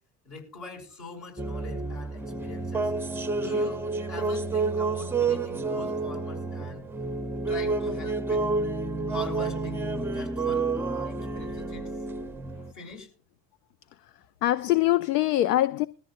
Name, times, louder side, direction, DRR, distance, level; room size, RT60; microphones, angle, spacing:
voice 1, 0.2-2.9 3.3-3.8 4.1-6.9 7.5-8.5 9.1-11.9 12.7-13.1, left 3 dB, 55° left, 6.0 m, -43 dB
sound 1, 1.4-12.7, right 3 dB, 5° right, 0.6 m, -29 dB
voice 2, 14.0-15.9, left 15 dB, 70° left, 0.6 m, -24 dB
21.0 x 14.0 x 2.5 m
figure-of-eight pair, 60°, 49 cm